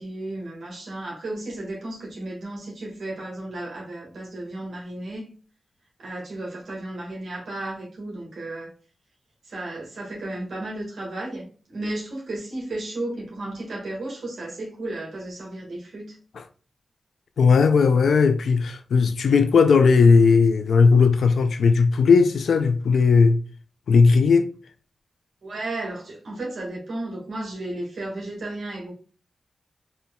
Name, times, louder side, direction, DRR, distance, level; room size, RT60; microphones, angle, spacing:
voice 1, 0.0-5.3 6.0-8.7 9.4-16.2 25.4-28.9, right 1 dB, 80° right, 1.4 m, -34 dB
voice 2, 17.4-23.4 23.9-24.5, left 5 dB, 90° left, 0.4 m, -17 dB
4.3 x 2.7 x 2.2 m
wide cardioid pair, 85°, 0 cm